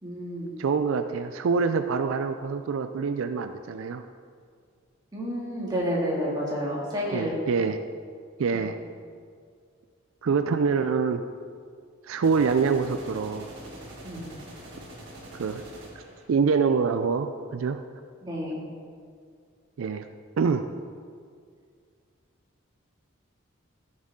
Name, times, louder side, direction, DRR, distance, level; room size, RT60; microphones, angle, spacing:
voice 1, 0.0-0.5 5.1-7.4 8.6-8.7 14.0-14.3 18.2-18.6, equal, 20° right, -5 dB, 2.3 m, -30 dB
voice 2, 0.6-4.0 7.1-7.8 8.4-8.8 10.2-11.2 12.1-13.5 15.3-15.6 16.3-17.8 19.8-20.1 20.4-20.7, right 5 dB, 75° right, 9 dB, 0.4 m, -25 dB
sound 1, 12.2-16.2, right 1 dB, 60° right, 1.8 m, -44 dB
14.0 x 6.4 x 3.7 m, 2.1 s
head